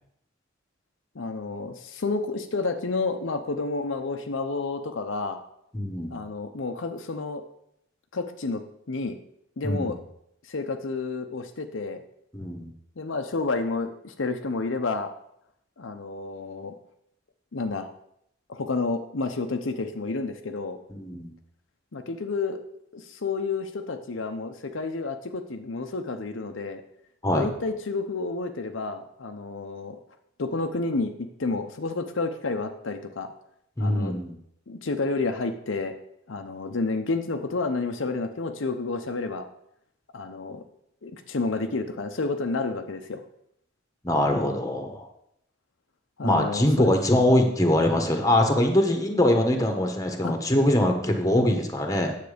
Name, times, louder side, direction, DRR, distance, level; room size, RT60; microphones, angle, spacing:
voice 1, 1.1-5.4 6.1-7.4 8.1-8.6 8.9-9.2 9.6-10.0 10.5-12.0 13.0-15.1 15.8-16.7 17.5-17.9 18.5-20.8 21.9-22.6 22.9-26.8 27.3-30.0 30.4-33.3 33.8-34.2 34.7-35.9 36.3-39.5 40.1-40.6 41.0-43.2 46.2-46.9 50.2-50.4, left 3 dB, 70° left, 6 dB, 0.7 m, -30 dB
voice 2, 5.7-6.2 9.6-9.9 12.3-12.7 20.9-21.3 27.2-27.5 33.8-34.3 44.0-45.1 46.2-52.2, left 1 dB, 15° left, 4 dB, 1.2 m, -23 dB
9.3 x 7.3 x 5.1 m, 0.75 s
head